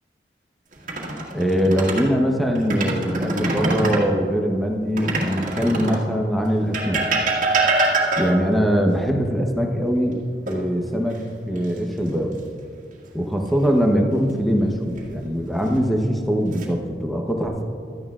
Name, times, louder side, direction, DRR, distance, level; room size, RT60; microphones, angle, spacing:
sound 1, 0.7-2.1 2.6-4.1 5.0-6.1 6.7-8.6 10.5-11.2 11.6-11.8 14.7-15.3 16.0-16.7, right 2 dB, 45° right, 2.0 m, -24 dB
voice 1, 1.3-7.0 8.2-10.2 10.5-11.2 11.5-12.4 13.1-17.6, equal, ahead, 1 dB, 0.9 m, -22 dB
16.5 x 13.0 x 2.4 m, 2.4 s
head